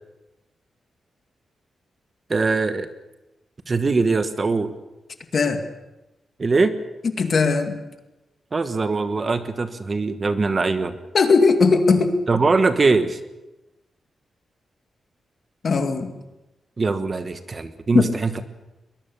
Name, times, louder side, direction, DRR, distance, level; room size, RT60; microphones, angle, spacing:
voice 1, 2.3-2.9 3.7-4.7 6.4-6.7 8.5-11.0 12.3-13.2 16.8-18.4, right 3 dB, 30° right, 10 dB, 1.3 m, -21 dB
voice 2, 7.2-7.8 11.1-12.1 15.6-16.1 17.9-18.1, left 4 dB, 45° left, 6 dB, 2.3 m, -18 dB
22.5 x 21.5 x 7.0 m, 1.0 s
wide cardioid pair, 150°, 0 cm